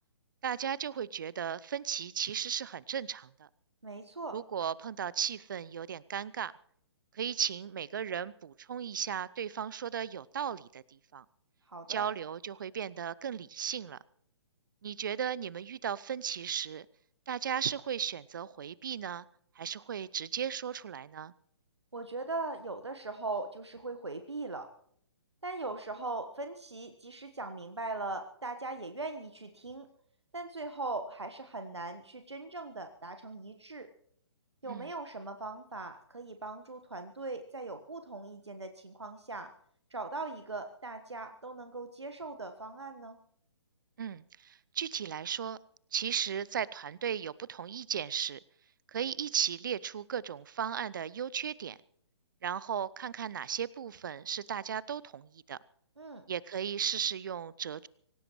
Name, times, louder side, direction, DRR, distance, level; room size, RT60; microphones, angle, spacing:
voice 1, 0.4-3.5 4.3-6.5 7.1-11.2 11.9-14.0 14.8-16.9 17.3-19.3 19.6-21.3 34.6-34.9 44.0-45.6 45.9-48.4 48.9-51.8 52.4-55.6 56.3-57.9, right 8 dB, 50° right, 22 dB, 0.6 m, -36 dB
voice 2, 3.8-4.4 11.7-12.1 21.9-24.7 25.4-29.9 30.3-33.9 34.6-39.5 39.9-43.2 56.0-56.2, right 3 dB, 75° right, 7 dB, 1.4 m, -40 dB
25.0 x 16.0 x 3.1 m, 0.66 s
figure-of-eight pair, 130°, 14 cm